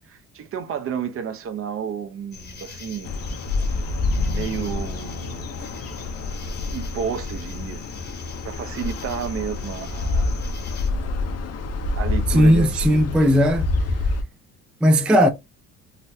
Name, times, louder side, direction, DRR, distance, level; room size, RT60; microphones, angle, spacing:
voice 1, 0.0-3.1 4.3-5.5 6.7-7.8 8.4-10.3 11.9-13.2, right 7 dB, 45° right, 0.7 m, -31 dB
sound 1, 2.3-10.9, left 5 dB, 35° left, 0.9 m, -41 dB
sound 2, 3.0-14.2, left 3 dB, 55° left, 0.7 m, -27 dB
voice 2, 12.3-13.7 14.8-15.3, equal, 5° right, 0.3 m, -16 dB
4.0 x 2.1 x 2.6 m
cardioid pair, 105°, 30 cm